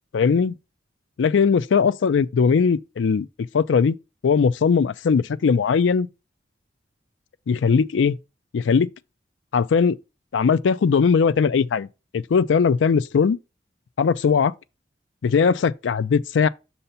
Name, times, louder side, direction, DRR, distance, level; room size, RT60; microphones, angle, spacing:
voice 1, 0.1-0.5 1.2-3.3 3.5-4.0 4.2-6.1 7.5-8.2 8.5-8.9 9.5-10.0 10.3-11.9 12.1-13.4 14.0-14.5 15.2-16.5, left 6 dB, 90° left, 0.4 m, -19 dB
6.6 x 2.8 x 5.5 m
head